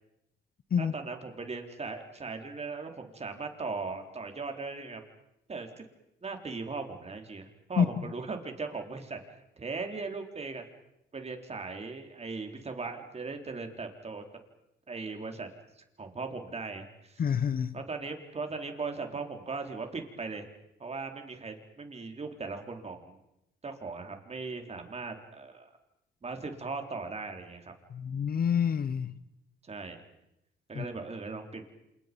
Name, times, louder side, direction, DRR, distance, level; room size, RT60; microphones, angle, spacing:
voice 1, 0.8-5.0 5.5-5.8 6.2-10.6 11.1-14.2 14.9-15.5 15.8-17.2 17.7-20.5 20.8-23.2 23.6-25.7 26.2-27.7 29.6-30.0 30.7-31.7, right 4 dB, 30° right, 4.2 m, -38 dB
voice 2, 17.2-17.8 27.9-29.2 30.7-30.9, left 7 dB, 50° left, 1.1 m, -28 dB
28.0 x 28.0 x 5.4 m
cardioid pair, 90°, 20 cm